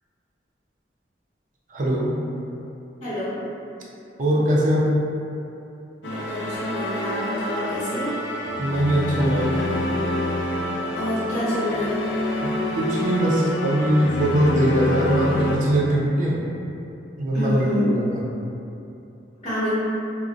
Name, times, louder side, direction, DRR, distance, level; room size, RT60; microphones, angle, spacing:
voice 1, 1.7-2.2 4.2-4.9 8.6-9.5 12.4-16.4 17.2-18.2, right 1 dB, 45° right, -4 dB, 0.5 m, -21 dB
voice 2, 3.0-3.4 6.0-8.1 11.0-12.0 17.3-17.9 19.4-19.7, left 1 dB, 35° left, -12 dB, 0.7 m, -27 dB
sound 1, 6.0-15.6, left 1 dB, 75° left, 0.3 m, -27 dB
2.4 x 2.1 x 3.8 m, 2.8 s
head